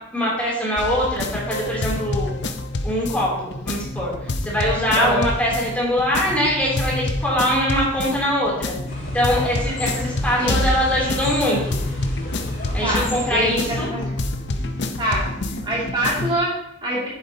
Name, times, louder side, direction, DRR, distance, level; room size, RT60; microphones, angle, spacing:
voice 1, 0.1-2.3 2.8-4.1 4.4-8.7 9.1-11.8 12.7-13.9, equal, 5° left, -5 dB, 3.0 m, -22 dB
sound 1, 0.8-16.3, left 2 dB, 55° left, 0.7 m, -27 dB
voice 2, 4.9-5.2 10.4-10.6 12.7-14.1 15.0-15.3 15.6-17.1, equal, 25° right, -6 dB, 2.5 m, -24 dB
sound 2, 8.9-13.9, equal, 40° left, 3.5 m, -33 dB
11.0 x 8.1 x 2.8 m, 0.79 s
head